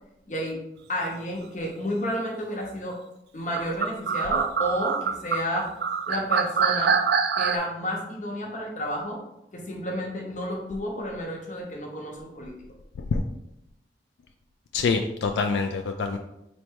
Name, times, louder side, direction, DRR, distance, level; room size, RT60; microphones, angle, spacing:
voice 1, 0.3-0.6 0.9-3.0 3.3-5.7 6.1-7.0 7.3-9.2 9.5-12.5, equal, 45° left, 0 dB, 0.8 m, -31 dB
sound 1, 3.5-7.6, right 6 dB, 65° right, 0.3 m, -24 dB
voice 2, 14.7-16.2, left 4 dB, 85° left, 6 dB, 0.3 m, -25 dB
4.0 x 2.2 x 4.6 m, 0.84 s
head